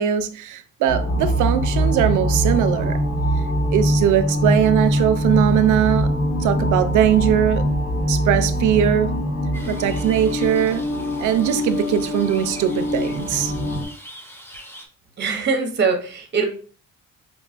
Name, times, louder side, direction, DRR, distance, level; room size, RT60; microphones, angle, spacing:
voice 1, 0.0-3.0 3.7-6.1 6.4-7.6 8.1-9.1 9.7-10.8 11.2-13.5, right 10 dB, 80° right, 0.5 m, -20 dB
sound 1, 0.9-13.9, equal, 45° left, 0.9 m, -22 dB
sound 2, 9.5-14.9, equal, 10° left, 0.7 m, -43 dB
voice 2, 15.2-16.5, right 5 dB, 35° right, 0.8 m, -22 dB
5.0 x 2.3 x 2.4 m
cardioid pair, 90°, 30 cm